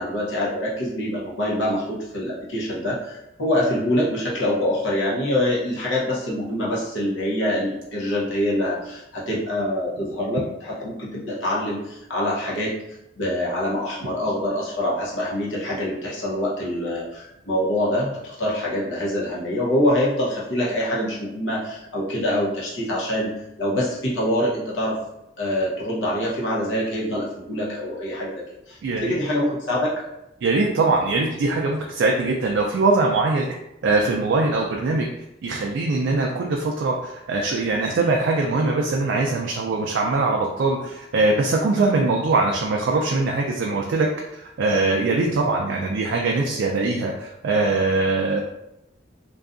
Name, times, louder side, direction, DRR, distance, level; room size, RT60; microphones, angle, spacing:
voice 1, 0.0-12.7 13.2-23.3 23.6-25.0 25.4-29.9, left 1 dB, 85° left, -5 dB, 0.8 m, -25 dB
voice 2, 28.8-29.1 30.4-33.5 33.8-35.1 35.4-48.4, right 3 dB, 75° right, 0 dB, 0.3 m, -22 dB
2.6 x 2.3 x 2.4 m, 0.87 s
head